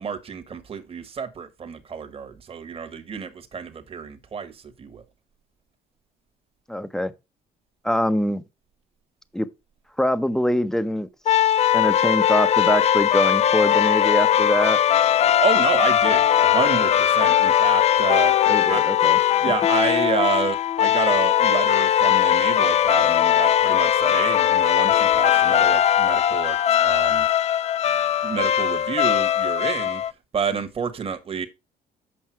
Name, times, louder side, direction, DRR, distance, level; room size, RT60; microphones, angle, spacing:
voice 1, 0.0-5.0 15.2-18.8 19.4-27.3 28.2-31.5, right 6 dB, 35° right, 1.3 m, -29 dB
voice 2, 6.7-7.1 7.8-8.4 9.3-9.5 10.0-11.1 11.7-14.8 18.5-19.2, equal, 5° left, 0.7 m, -23 dB
sound 1, 11.3-30.1, left 10 dB, 40° left, 0.3 m, -19 dB
7.6 x 5.4 x 4.6 m
cardioid pair, 110°, 17 cm